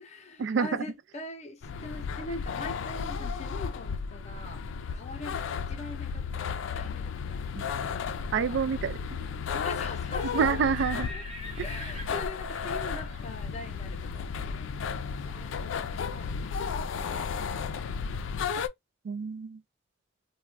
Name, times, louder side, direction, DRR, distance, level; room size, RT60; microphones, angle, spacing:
voice 1, 0.0-7.6 7.9-8.6 9.6-10.7 11.1-18.0, left 2 dB, 35° left, 0.6 m, -43 dB
sound 1, 1.6-18.7, left 6 dB, 90° left, 0.4 m, -34 dB
voice 2, 8.3-9.0 10.3-11.1 18.6-18.7 19.0-19.6, right 6 dB, 70° right, 0.3 m, -27 dB
Livestock farm animals working animals, 9.8-15.7, left 1 dB, 35° right, 0.8 m, -46 dB
2.4 x 2.1 x 3.2 m
head